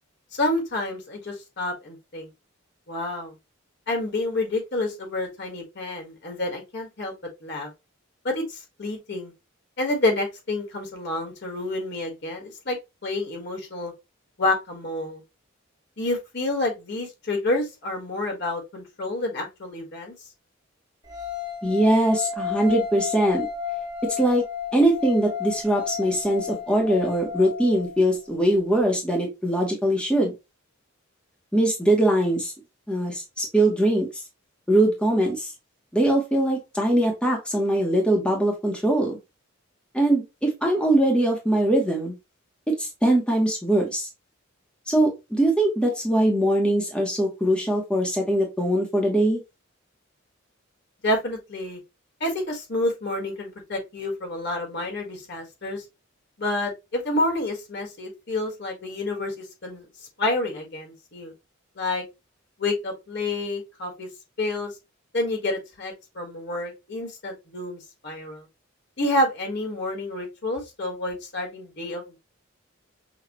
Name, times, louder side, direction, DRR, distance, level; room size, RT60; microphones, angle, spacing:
voice 1, 0.3-2.3 2.9-3.3 3.9-7.1 7.4-7.7 8.2-9.3 9.8-13.9 14.4-15.2 16.0-20.1 51.0-51.8 52.2-55.8 56.4-59.8 60.2-61.3 61.7-62.0 62.6-64.1 64.4-64.7 65.1-68.4 69.0-72.2, left 2 dB, 55° left, 2 dB, 1.5 m, -29 dB
sound 1, 21.1-28.2, left 7 dB, 20° right, 1.2 m, -33 dB
voice 2, 21.6-23.5 24.2-24.4 24.7-30.3 31.5-32.5 32.9-34.2 34.7-35.5 35.9-39.2 39.9-42.1 42.7-44.1 44.9-49.4, right 1 dB, 5° left, -1 dB, 0.9 m, -22 dB
5.9 x 2.3 x 2.9 m, 0.24 s
head